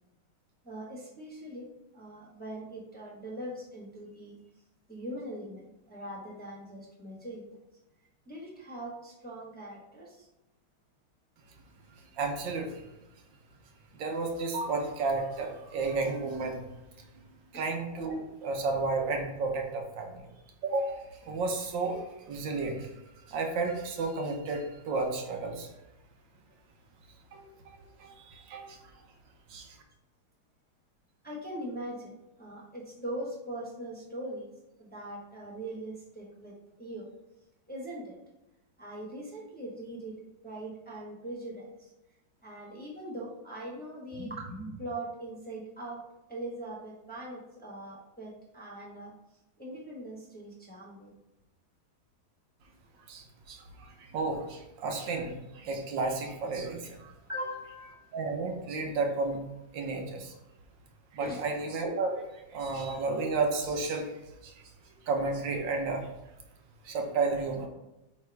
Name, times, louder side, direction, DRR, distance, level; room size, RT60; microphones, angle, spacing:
voice 1, 0.6-1.7 1.9-4.4 4.9-7.4 8.3-10.3 17.5-17.7 31.2-34.5 34.8-36.5 36.8-37.1 37.7-38.2 38.8-41.7 42.4-46.0 46.3-49.1 49.6-51.1 57.3-58.1 61.2-61.4, right 1 dB, 5° left, -4 dB, 1.0 m, -41 dB
voice 2, 12.1-12.9 13.9-16.6 17.5-20.3 20.6-22.9 23.3-25.7 27.3-27.5 28.0-28.8 29.5-29.7 53.1-57.1 58.1-59.4 59.7-60.3 61.1-64.1 64.4-64.5 65.0-66.1 66.8-67.7, right 3 dB, 85° right, 2 dB, 1.6 m, -32 dB
8.5 x 3.4 x 3.4 m, 0.93 s
omnidirectional pair, 2.0 m